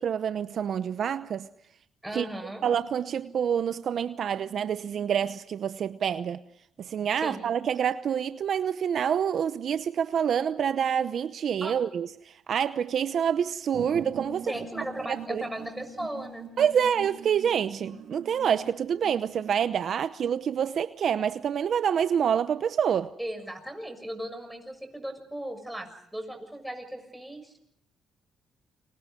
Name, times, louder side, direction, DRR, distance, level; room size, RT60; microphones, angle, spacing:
voice 1, 0.0-1.5 2.1-2.3 2.6-6.4 6.8-14.5 15.1-15.5 16.6-23.2, right 8 dB, 60° right, 0.8 m, -27 dB
voice 2, 2.0-2.6 6.8-6.9 7.2-7.5 11.6-11.8 14.4-16.4 23.2-27.7, right 1 dB, 5° right, 6.6 m, -37 dB
sound 1, 13.7-19.7, right 6 dB, 80° right, 4.8 m, -42 dB
28.5 x 25.0 x 5.3 m
cardioid pair, 90°, 0 cm